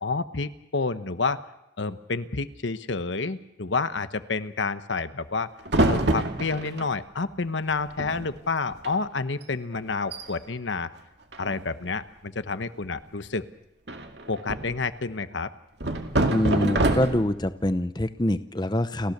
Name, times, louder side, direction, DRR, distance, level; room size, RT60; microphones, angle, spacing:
voice 1, 0.0-1.4 1.8-5.5 5.8-10.9 11.4-13.4 14.3-15.5, left 4 dB, 70° left, 11 dB, 1.0 m, -29 dB
sound 1, 5.7-6.9 7.7-7.8 8.0-8.4 8.7-8.9 9.4-9.5 9.9-10.2 11.3-11.9 13.9-14.8 15.8-17.4, right 1 dB, 60° right, 2.3 m, -26 dB
voice 2, 16.3-19.1, left 1 dB, 20° left, 11 dB, 0.8 m, -25 dB
30.0 x 15.0 x 6.7 m, 0.92 s
head